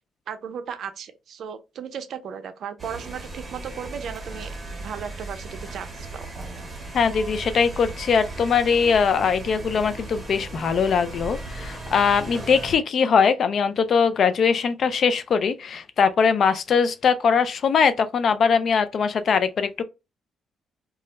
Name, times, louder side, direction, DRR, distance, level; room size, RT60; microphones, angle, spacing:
voice 1, 0.3-6.3, right 7 dB, 65° right, 0.4 m, -36 dB
sound 1, 2.8-12.7, right 2 dB, 25° right, 0.8 m, -37 dB
voice 2, 6.9-19.8, left 6 dB, 55° left, 0.4 m, -21 dB
2.3 x 2.1 x 2.8 m
cardioid pair, 90°, 0 cm